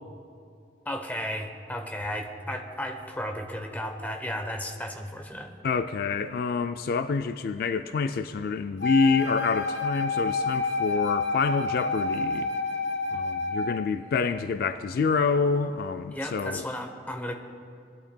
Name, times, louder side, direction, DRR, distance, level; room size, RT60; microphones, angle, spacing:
voice 1, 0.9-5.5 16.1-17.3, equal, 10° left, 4 dB, 0.8 m, -34 dB
voice 2, 5.6-12.5 13.1-16.6, left 4 dB, 55° left, 10 dB, 0.3 m, -27 dB
Wind instrument woodwind instrument, 8.8-13.9, left 3 dB, 75° left, 0.9 m, -28 dB
19.5 x 11.5 x 2.2 m, 2.4 s
head